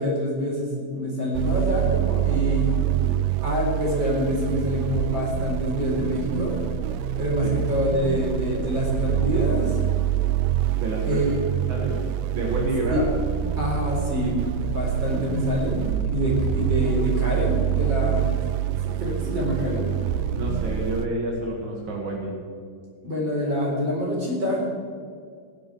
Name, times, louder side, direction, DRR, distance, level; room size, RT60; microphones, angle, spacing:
voice 1, 0.0-2.7 3.4-6.7 7.2-9.8 11.0-11.3 12.9-13.0 13.6-15.9 16.1-18.3 18.8-19.9 23.0-24.6, left 1 dB, 25° right, -2 dB, 4.3 m, -26 dB
sound 1, 1.3-21.1, right 11 dB, 85° right, 2.7 m, -26 dB
voice 2, 10.8-11.3 11.7-13.1 20.3-22.3, right 1 dB, 50° right, -1 dB, 1.4 m, -29 dB
19.0 x 10.0 x 6.2 m, 2.1 s
omnidirectional pair, 5.2 m